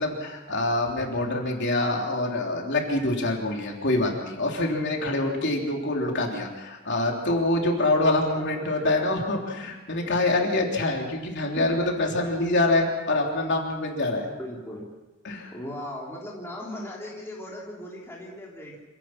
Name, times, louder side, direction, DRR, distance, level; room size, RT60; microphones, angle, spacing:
voice 1, 0.0-14.3 15.2-15.5, left 2 dB, 60° left, 0 dB, 3.4 m, -25 dB
voice 2, 14.4-14.9 15.5-18.8, left 1 dB, 10° left, -4 dB, 3.6 m, -37 dB
27.0 x 17.5 x 6.0 m, 1.1 s
head